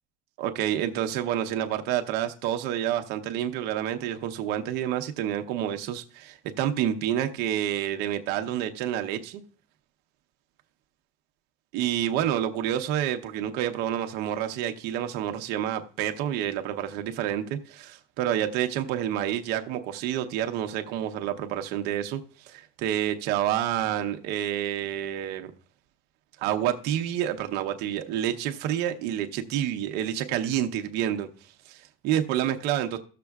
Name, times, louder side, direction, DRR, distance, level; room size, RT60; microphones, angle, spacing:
voice 1, 0.4-9.4 11.7-25.5 26.4-31.3 31.7-33.0, right 11 dB, 50° right, 0.8 m, -28 dB
16.5 x 6.8 x 2.3 m
cardioid pair, 170°, 21 cm